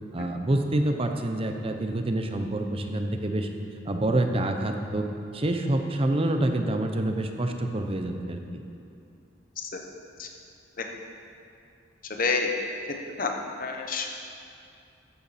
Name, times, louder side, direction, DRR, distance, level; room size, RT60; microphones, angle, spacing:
voice 1, 0.1-3.5 3.9-5.1 5.3-8.6, right 1 dB, 30° right, 5 dB, 0.7 m, -27 dB
voice 2, 12.2-12.5 13.2-13.3 13.6-14.1, left 4 dB, 45° left, 3 dB, 1.0 m, -27 dB
13.0 x 8.4 x 4.2 m, 2.6 s
head